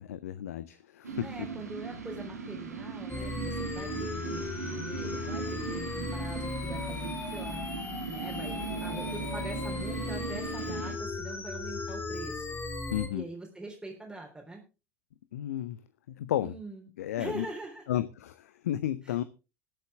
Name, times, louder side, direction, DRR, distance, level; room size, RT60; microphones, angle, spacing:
voice 1, 0.0-1.3 12.9-13.2 15.3-15.8 16.1-16.5 17.0-17.5 17.9-19.2, left 12 dB, 70° left, 15 dB, 0.7 m, -32 dB
sound 1, 1.0-11.0, right 5 dB, 80° right, 2.2 m, -38 dB
voice 2, 1.2-7.6 8.1-12.6 13.1-14.6 16.4-16.9 17.2-17.8 19.0-19.3, right 2 dB, 10° right, 0 dB, 3.7 m, -43 dB
sound 2, 3.1-13.1, left 3 dB, 25° left, 2.6 m, -37 dB
20.5 x 8.4 x 3.6 m, 0.31 s
figure-of-eight pair, 65°, 9 cm